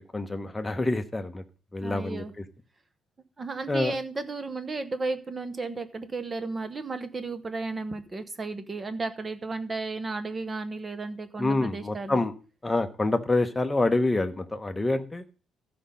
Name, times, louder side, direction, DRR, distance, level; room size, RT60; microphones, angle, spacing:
voice 1, 0.0-1.4 1.7-2.4 3.7-4.0 11.4-12.3 12.6-15.2, left 2 dB, 10° left, 7 dB, 1.0 m, -27 dB
voice 2, 1.8-2.3 3.4-12.2, right 3 dB, 20° right, 10 dB, 1.1 m, -34 dB
14.0 x 5.2 x 5.7 m, 0.36 s
cardioid pair, 155°, 0 cm